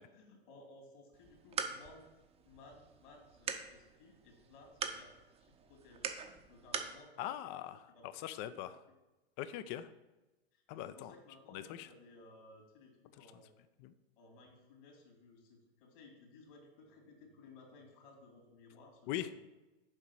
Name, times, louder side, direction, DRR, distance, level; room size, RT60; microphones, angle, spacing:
voice 1, 0.1-2.1 2.4-5.1 5.4-6.0 6.5-7.4 7.9-8.7 10.5-13.5 14.2-19.4, left 2 dB, 55° left, 2 dB, 2.7 m, -59 dB
sound 1, 1.1-7.0, right 6 dB, 20° right, 0.7 m, -44 dB
voice 2, 7.2-8.8 9.4-9.9 10.7-11.1 11.5-11.9 13.8-13.9 19.1-19.3, left 12 dB, 30° left, 14 dB, 0.5 m, -41 dB
7.2 x 4.8 x 6.2 m, 1.1 s
hypercardioid pair, 105°, 33 cm